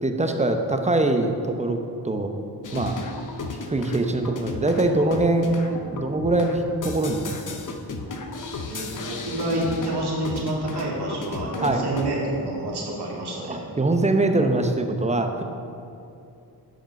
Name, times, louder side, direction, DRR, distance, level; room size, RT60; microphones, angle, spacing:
voice 1, 0.0-2.3 2.7-3.0 3.7-7.4 11.6-11.8 13.5-15.4, right 2 dB, 15° right, 5 dB, 0.8 m, -23 dB
sound 1, 2.6-12.1, left 3 dB, 50° left, 0.8 m, -35 dB
voice 2, 8.7-13.6, right 1 dB, 75° right, -4 dB, 2.2 m, -28 dB
9.1 x 5.0 x 5.3 m, 2.7 s
cardioid pair, 80°, 40 cm